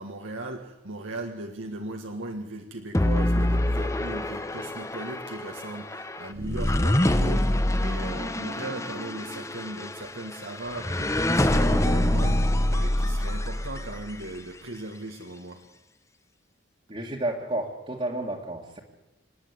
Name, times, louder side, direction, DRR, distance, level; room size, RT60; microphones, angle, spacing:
voice 1, 0.0-15.6, right 2 dB, 80° right, 3 dB, 1.7 m, -38 dB
sound 1, 2.9-14.2, left 1 dB, 15° left, 0.9 m, -26 dB
voice 2, 16.9-18.8, right 1 dB, 30° right, -3 dB, 1.9 m, -31 dB
26.5 x 10.0 x 9.7 m, 1.0 s
head